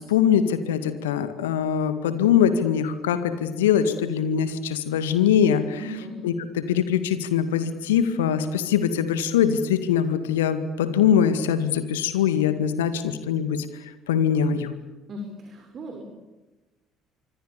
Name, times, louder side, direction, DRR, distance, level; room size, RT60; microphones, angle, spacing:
voice 1, 0.0-5.8 6.2-14.7, left 8 dB, 75° left, 11 dB, 1.9 m, -22 dB
voice 2, 5.8-6.2 15.1-16.0, equal, 40° right, 3 dB, 5.4 m, -37 dB
27.0 x 24.5 x 7.0 m, 1.1 s
figure-of-eight pair, 55°, 0 cm